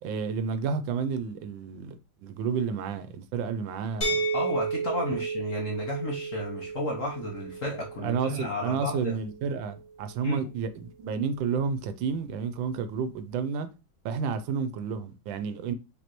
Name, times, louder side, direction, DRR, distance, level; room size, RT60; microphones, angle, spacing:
voice 1, 0.0-4.2 8.0-13.7 14.0-15.7, right 6 dB, 80° right, 1.3 m, -31 dB
sound 1, 4.0-9.8, right 4 dB, 35° left, 1.9 m, -33 dB
voice 2, 4.3-9.2 10.2-10.5, left 1 dB, 55° left, 0.9 m, -32 dB
5.2 x 3.3 x 2.9 m
omnidirectional pair, 2.1 m